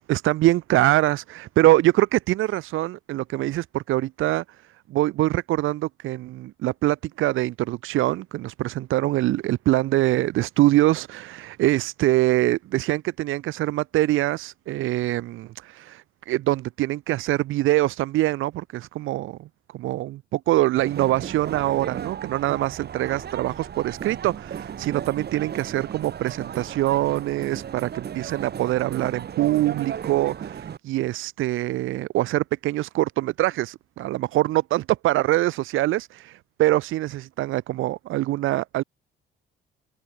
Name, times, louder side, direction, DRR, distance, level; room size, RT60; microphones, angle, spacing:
voice 1, 0.1-4.4 4.9-19.5 19.7-38.8, right 16 dB, 90° right, 1.6 m, -24 dB
sound 1, 20.8-30.8, right 8 dB, 55° right, 2.9 m, -35 dB
open air
cardioid pair, 90°, 20 cm